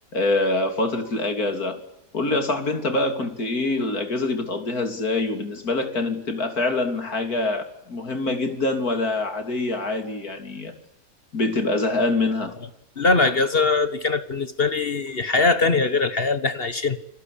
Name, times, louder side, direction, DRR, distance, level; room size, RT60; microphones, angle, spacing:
voice 1, 0.1-1.8 2.1-10.7 11.3-12.6, left 2 dB, 80° left, 3.7 m, -25 dB
voice 2, 13.0-17.0, left 3 dB, 40° left, 1.5 m, -21 dB
29.5 x 20.5 x 8.6 m
omnidirectional pair, 1.6 m